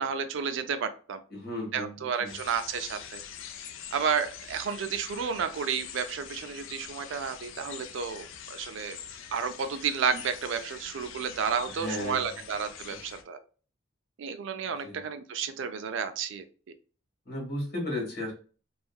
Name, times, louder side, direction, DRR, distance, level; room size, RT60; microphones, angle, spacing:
voice 1, 0.0-1.2 1.7-3.2 3.9-9.0 9.3-13.4 14.2-16.4, right 6 dB, 65° right, 9 dB, 0.3 m, -31 dB
voice 2, 1.3-2.3 11.7-12.4 14.8-15.0 17.2-18.3, left 1 dB, 50° left, -2 dB, 1.4 m, -35 dB
sound 1, 2.3-13.2, left 8 dB, 70° left, 0.4 m, -44 dB
2.7 x 2.4 x 2.2 m, 0.37 s
head